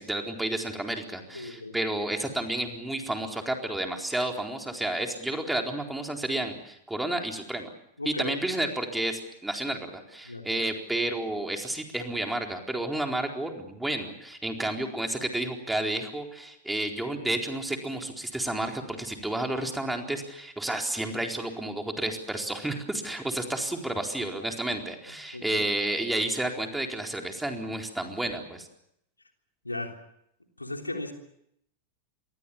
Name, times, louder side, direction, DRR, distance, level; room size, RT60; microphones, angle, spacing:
voice 1, 0.0-7.7 8.0-28.7, right 1 dB, 5° right, 3 dB, 4.2 m, -31 dB
voice 2, 1.3-1.8 8.0-8.3 10.2-10.6 14.6-14.7 25.3-25.6 29.6-30.0 30.6-31.1, left 2 dB, 85° left, 4 dB, 3.4 m, -36 dB
28.0 x 23.5 x 7.2 m, 0.75 s
figure-of-eight pair, 90°, 0 cm